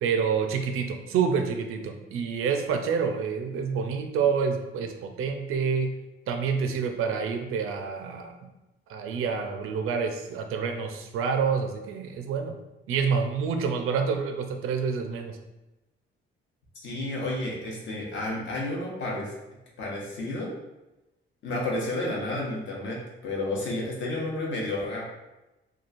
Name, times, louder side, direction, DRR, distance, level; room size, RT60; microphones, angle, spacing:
voice 1, 0.0-5.9 6.3-8.3 8.9-12.5 12.9-15.4, right 6 dB, 90° right, 5 dB, 0.4 m, -28 dB
voice 2, 16.8-19.3 19.8-20.5 21.4-25.0, left 1 dB, 60° left, -3 dB, 0.8 m, -31 dB
3.0 x 2.3 x 2.5 m, 1.0 s
cardioid pair, 165°, 21 cm